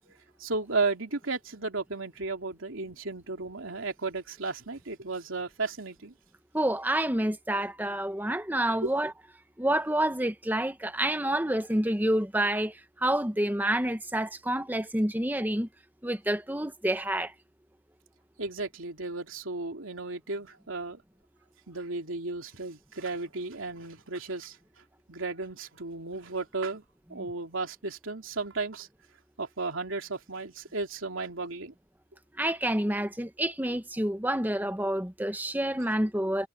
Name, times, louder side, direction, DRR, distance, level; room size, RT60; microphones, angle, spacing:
voice 1, 0.4-6.1 8.8-8.9 18.4-21.0 21.7-24.6 25.1-26.8 27.1-28.9 29.4-31.7, right 3 dB, 90° right, 3.0 m, -34 dB
voice 2, 6.5-9.1 9.6-12.7 13.0-15.7 16.0-17.3 32.4-36.5, right 1 dB, 10° right, 1.1 m, -28 dB
head